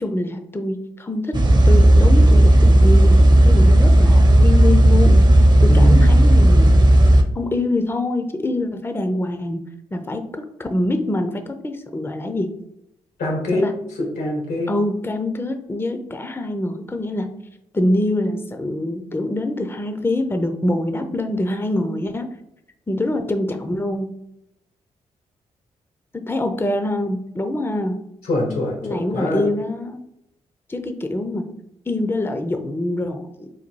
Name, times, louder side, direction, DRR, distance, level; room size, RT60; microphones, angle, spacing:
voice 1, 0.0-1.4 1.6-5.2 5.6-6.7 7.4-9.6 9.9-12.5 13.5-13.7 14.7-17.3 17.7-22.3 22.9-24.1 26.1-28.0 28.8-30.0 30.7-31.5 31.9-33.5, left 1 dB, 15° left, 6 dB, 0.6 m, -24 dB
sound 1, 1.3-7.2, right 1 dB, 30° right, 0.8 m, -12 dB
voice 2, 5.7-6.1 13.2-14.7 28.2-29.5, left 1 dB, 85° left, 0 dB, 1.6 m, -23 dB
4.1 x 2.2 x 4.5 m, 0.81 s
supercardioid pair, 50°, 15 cm